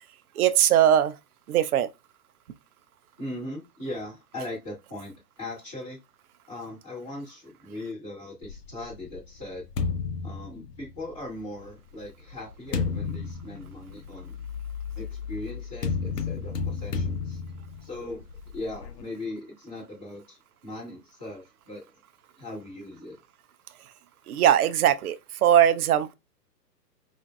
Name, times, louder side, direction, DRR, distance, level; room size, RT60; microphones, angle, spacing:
voice 1, 0.4-1.1 1.5-1.9 24.3-26.2, right 10 dB, 60° right, 0.5 m, -20 dB
voice 2, 3.2-6.0 6.5-9.6 10.2-14.4 14.9-17.4 17.8-18.2 18.5-21.8 22.4-23.2, left 1 dB, 10° left, 0.4 m, -39 dB
sound 1, 8.4-11.2 12.0-19.0, left 5 dB, 70° left, 0.7 m, -33 dB
5.1 x 2.5 x 2.2 m
figure-of-eight pair, 120°, 50 cm